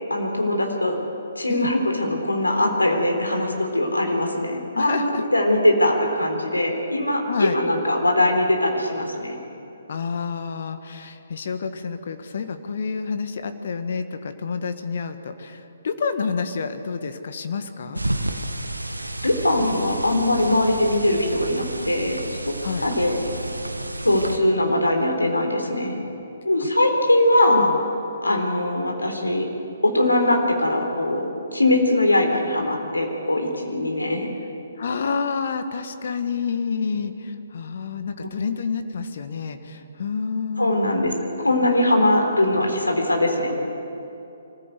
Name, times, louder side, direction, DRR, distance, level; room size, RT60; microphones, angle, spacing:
voice 1, 0.1-1.0 1.4-9.4 19.2-22.2 22.4-22.5 22.8-23.2 24.0-26.0 26.4-27.7 28.2-29.5 29.8-34.3 38.2-38.3 40.6-43.6, left 1 dB, 80° left, 2 dB, 3.8 m, -21 dB
voice 2, 4.7-5.3 7.3-7.6 9.9-18.0 22.6-22.9 26.6-26.7 27.5-27.8 34.8-41.0, left 5 dB, 50° left, 8 dB, 1.4 m, -29 dB
sound 1, 17.9-24.4, right 1 dB, 85° right, 1.4 m, -31 dB
24.5 x 15.5 x 8.2 m, 2.7 s
figure-of-eight pair, 135°, 0 cm